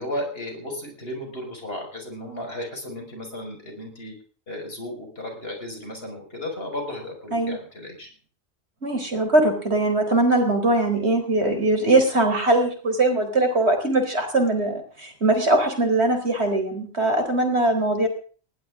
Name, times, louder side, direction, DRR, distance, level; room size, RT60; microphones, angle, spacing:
voice 1, 0.0-4.1 4.5-8.1, left 1 dB, 60° left, 2 dB, 5.7 m, -34 dB
voice 2, 8.8-18.1, right 2 dB, 70° right, 5 dB, 4.4 m, -21 dB
20.5 x 17.0 x 3.7 m, 0.41 s
omnidirectional pair, 1.1 m